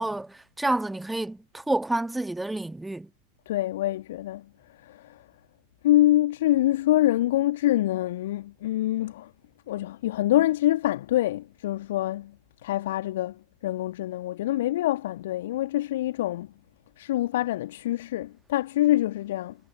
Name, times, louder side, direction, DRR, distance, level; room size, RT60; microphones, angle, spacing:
voice 1, 0.0-3.1, right 2 dB, 5° right, 1.5 m, -29 dB
voice 2, 3.5-4.4 4.8-5.2 5.8-9.3 9.7-12.3 12.6-16.5 17.0-19.6, left 14 dB, 55° left, 1.5 m, -25 dB
figure-of-eight pair, 90°, 0 cm